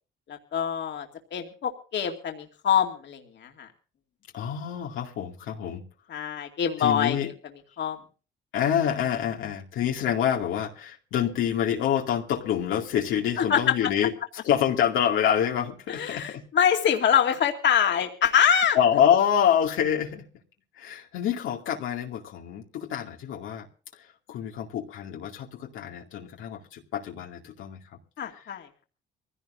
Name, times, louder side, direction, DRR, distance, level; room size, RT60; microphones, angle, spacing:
voice 1, 0.3-3.7 6.1-7.2 7.8-8.0 13.4-13.8 15.9-18.8 28.2-28.7, left 8 dB, 65° left, 2.4 m, -25 dB
voice 2, 4.3-5.8 6.8-7.3 8.5-14.1 14.4-16.4 18.7-20.2 20.8-23.7 24.3-27.8, left 9 dB, 90° left, 2.4 m, -26 dB
24.0 x 16.0 x 2.6 m
cardioid pair, 90°, 20 cm